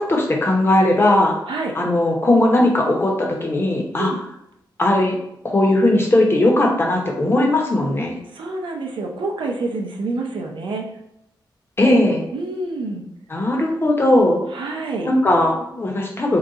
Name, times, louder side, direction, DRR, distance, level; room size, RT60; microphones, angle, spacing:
voice 1, 0.0-1.4 1.7-4.1 4.8-5.2 5.4-8.2 11.8-12.2 13.3-14.4 15.0-16.4, left 1 dB, 30° left, 0 dB, 0.8 m, -18 dB
voice 2, 8.3-10.9 12.3-13.1 14.5-15.1, right 3 dB, 85° right, 2 dB, 0.6 m, -27 dB
3.8 x 2.4 x 3.8 m, 0.81 s
wide cardioid pair, 100°, 8 cm